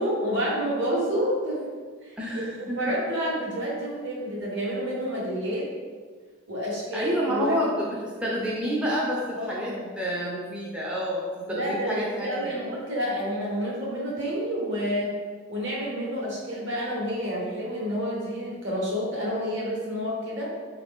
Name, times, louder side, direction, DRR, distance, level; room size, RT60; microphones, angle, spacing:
voice 1, 0.0-1.6 2.0-5.7 6.5-7.6 9.3-9.8 11.5-15.1 15.5-20.5, equal, 60° right, -4 dB, 1.1 m, -29 dB
voice 2, 2.2-2.8 6.9-12.7, equal, 5° right, -5 dB, 0.4 m, -29 dB
4.2 x 2.4 x 3.5 m, 1.5 s
head